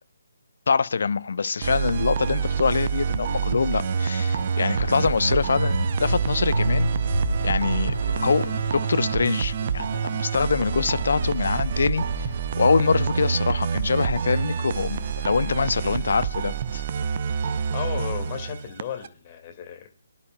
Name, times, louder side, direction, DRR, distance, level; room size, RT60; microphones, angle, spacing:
voice 1, 0.7-6.9 7.4-8.0 8.2-12.3 12.6-16.8, left 5 dB, 55° left, 0.6 m, -24 dB
sound 1, 1.6-19.1, right 7 dB, 35° right, 0.7 m, -27 dB
sound 2, 3.7-15.8, equal, 85° right, 3.5 m, -32 dB
voice 2, 17.7-19.9, left 9 dB, 25° left, 2.1 m, -34 dB
23.5 x 11.0 x 2.3 m
figure-of-eight pair, 145°, 0 cm